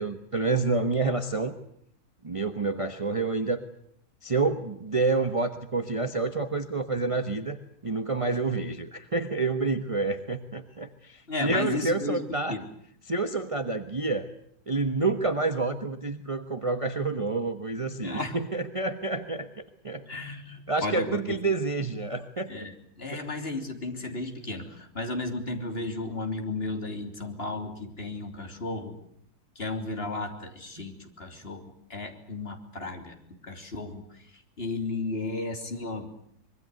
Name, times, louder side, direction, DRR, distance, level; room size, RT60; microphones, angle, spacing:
voice 1, 0.0-1.6 2.2-3.6 4.2-7.6 7.8-12.6 13.1-14.3 14.7-20.1 20.7-22.5 23.1-23.2 30.8-30.9, right 3 dB, 25° right, 8 dB, 1.2 m, -28 dB
voice 2, 11.3-12.2 12.5-12.7 18.0-18.3 20.1-21.4 22.5-29.0 29.6-31.6 31.9-33.1 33.4-34.0 34.6-36.1, left 2 dB, 40° left, 4 dB, 3.6 m, -34 dB
25.0 x 22.5 x 7.9 m, 0.69 s
omnidirectional pair, 1.6 m